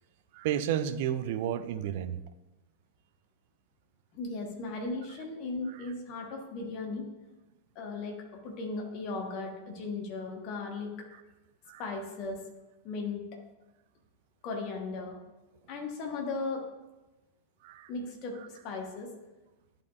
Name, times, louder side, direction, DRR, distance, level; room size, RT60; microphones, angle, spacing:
voice 1, 0.3-2.2 11.7-11.8 17.6-17.9, right 10 dB, 50° right, 11 dB, 0.4 m, -31 dB
voice 2, 4.1-7.1 7.7-11.1 11.8-12.4 12.8-13.2 14.4-15.2 15.7-16.6 17.9-19.1, left 3 dB, 40° left, 1 dB, 1.4 m, -37 dB
10.5 x 4.3 x 2.6 m, 1.1 s
figure-of-eight pair, 90°, 0 cm